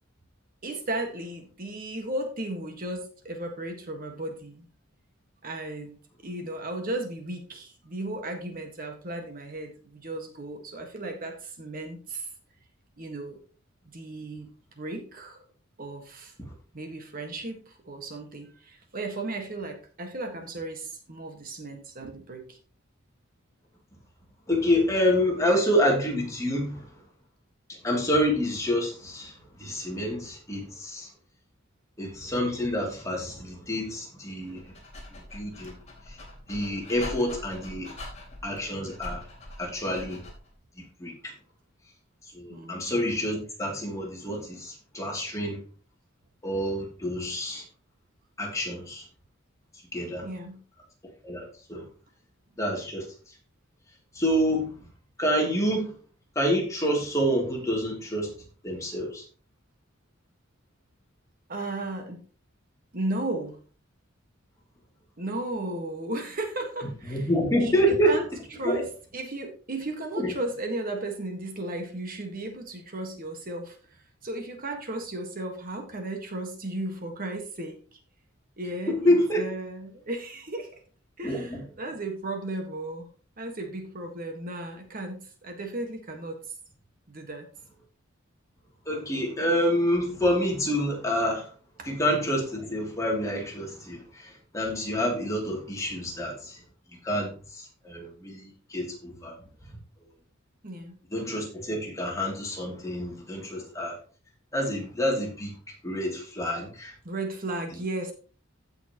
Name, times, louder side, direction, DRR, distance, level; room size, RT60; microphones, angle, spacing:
voice 1, 0.6-4.7 5.4-6.0 6.2-12.3 13.0-13.4 13.9-14.5 14.8-15.4 15.8-16.3 16.7-22.6 42.5-42.8 50.2-50.6 61.5-62.2 62.9-63.6 65.2-67.3 67.6-68.2 68.5-68.8 69.1-78.0 78.6-80.8 81.2-83.1 83.4-86.4 87.1-87.5 91.8-91.9 100.6-101.0 107.0-108.1, right 2 dB, 45° right, 1.6 m, -35 dB
voice 2, 24.5-26.9 27.8-31.1 32.0-34.6 35.1-35.8 36.1-36.2 36.5-37.9 38.4-39.2 39.6-40.2 41.0-41.3 42.3-45.6 46.4-47.6 48.4-49.0 49.9-50.3 51.2-51.8 52.6-53.1 54.1-54.8 55.2-56.0 56.3-58.3 58.6-59.2 67.1-68.2 68.6-68.8 70.2-70.3 78.9-79.4 81.2-81.6 88.9-91.5 91.9-96.6 97.0-99.3 101.1-103.9 104.5-105.6 105.8-106.9, equal, 15° left, 2.8 m, -27 dB
Dog, 34.4-40.5, left 1 dB, 35° left, 3.3 m, -43 dB
15.5 x 5.8 x 3.0 m
head